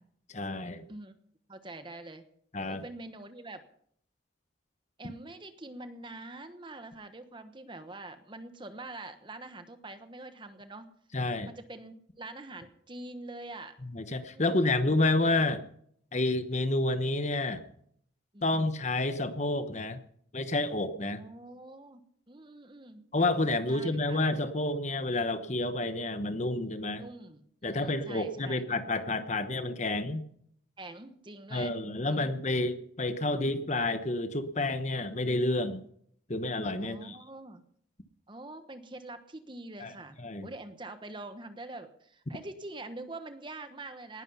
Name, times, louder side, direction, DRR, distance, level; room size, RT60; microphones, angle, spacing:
voice 1, 0.3-0.8 2.5-2.8 11.1-11.5 13.9-15.7 16.1-17.6 18.4-20.0 20.3-21.2 23.1-27.0 27.6-30.2 31.5-35.8 36.3-37.2 39.8-39.9 40.2-40.5, left 2 dB, 35° left, 10 dB, 1.0 m, -29 dB
voice 2, 1.5-2.2 2.7-3.6 5.0-10.9 11.4-13.7 14.3-14.7 18.3-18.6 21.2-23.0 23.6-24.2 27.0-28.6 30.8-31.7 32.1-32.3 36.8-37.6 38.3-44.2, right 2 dB, 25° right, 9 dB, 1.2 m, -45 dB
19.0 x 11.5 x 5.6 m, 0.66 s
head